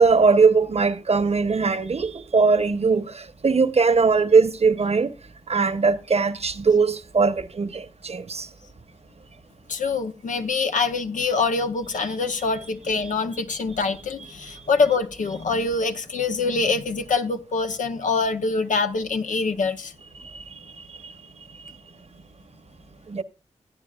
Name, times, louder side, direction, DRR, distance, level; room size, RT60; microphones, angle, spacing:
voice 1, 0.0-3.0 3.4-5.1 5.5-8.4 23.1-23.2, right 4 dB, 55° right, 1.0 m, -20 dB
voice 2, 9.7-19.9, left 4 dB, 85° left, 0.9 m, -24 dB
15.5 x 9.5 x 2.4 m
cardioid pair, 40°, 13 cm